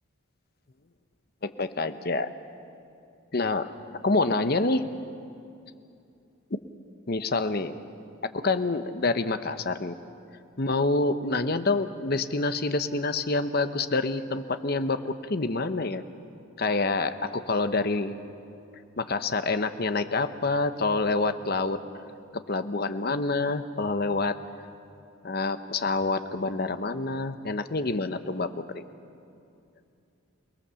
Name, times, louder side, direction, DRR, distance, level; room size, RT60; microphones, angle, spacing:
voice 1, 1.4-2.3 3.3-3.7 4.0-4.9 7.1-7.8 8.3-10.0 10.6-16.0 16.6-18.1 19.0-21.8 22.5-24.4 25.2-28.8, left 3 dB, 50° left, 10 dB, 0.9 m, -27 dB
28.5 x 19.0 x 7.0 m, 2.6 s
head